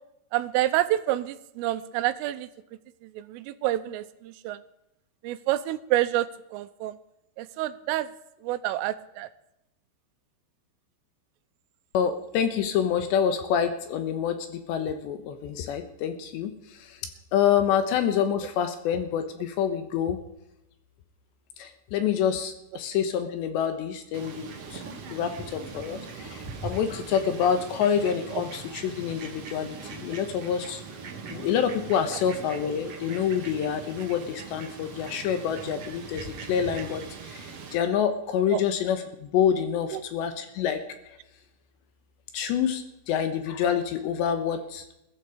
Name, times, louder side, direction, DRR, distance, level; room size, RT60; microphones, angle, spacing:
voice 1, 0.3-2.5 3.0-4.6 5.2-6.9 7.4-8.1 8.4-9.3 28.3-28.4 38.5-38.6 39.9-40.0, right 14 dB, 85° right, 12 dB, 3.4 m, -28 dB
voice 2, 11.9-17.0 17.3-20.2 21.6-24.8 25.1-30.8 31.3-40.8 42.3-44.8, left 8 dB, 70° left, 8 dB, 3.1 m, -27 dB
Fowl, 24.1-37.7, right 5 dB, 55° right, 1.8 m, -41 dB
21.0 x 12.5 x 5.1 m, 0.85 s
omnidirectional pair, 5.7 m